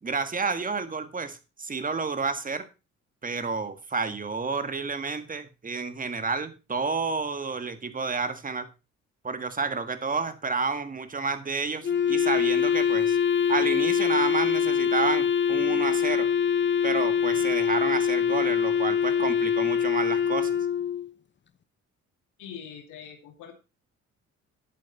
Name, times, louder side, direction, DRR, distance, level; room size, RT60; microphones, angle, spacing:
voice 1, 0.0-2.7 3.2-8.7 9.2-13.2 13.5-16.3 16.8-20.5, right 4 dB, 30° right, 10 dB, 1.7 m, -30 dB
Wind instrument woodwind instrument, 11.8-21.1, left 7 dB, 40° left, 0.8 m, -24 dB
voice 2, 22.4-23.5, left 8 dB, 90° left, 3 dB, 2.4 m, -43 dB
11.0 x 8.4 x 4.1 m, 0.30 s
cardioid pair, 90°, 30 cm